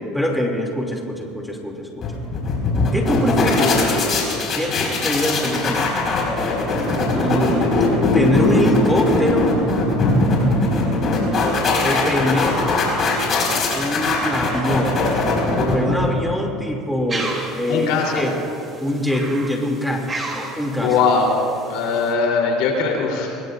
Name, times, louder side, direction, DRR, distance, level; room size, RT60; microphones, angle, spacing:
voice 1, 0.1-2.1 2.9-5.9 7.1-7.8 8.1-9.5 11.8-12.7 13.7-15.1 15.7-18.3 18.8-20.9, equal, ahead, -1 dB, 2.7 m, -24 dB
sound 1, 2.0-16.4, left 2 dB, 45° left, 4.9 m, -20 dB
sound 2, 17.1-22.1, right 2 dB, 25° right, 3.1 m, -34 dB
voice 2, 17.7-18.2 20.8-21.3 21.7-23.4, left 5 dB, 70° left, 0 dB, 3.5 m, -20 dB
24.5 x 22.0 x 2.6 m, 2.6 s
supercardioid pair, 100°, 0 cm